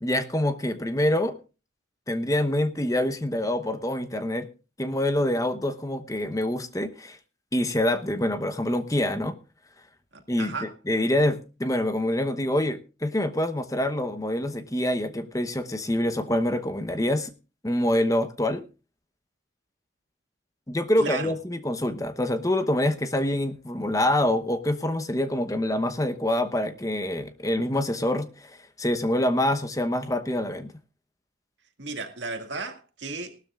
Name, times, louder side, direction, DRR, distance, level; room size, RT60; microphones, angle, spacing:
voice 1, 0.0-1.3 2.1-4.5 4.8-7.2 7.5-9.3 10.3-17.3 17.6-18.6 20.7-30.7, left 1 dB, 15° left, 1.0 m, -26 dB
voice 2, 10.4-10.7 21.0-21.4 31.8-33.5, right 3 dB, 70° right, 2.1 m, -34 dB
18.5 x 12.5 x 2.4 m
head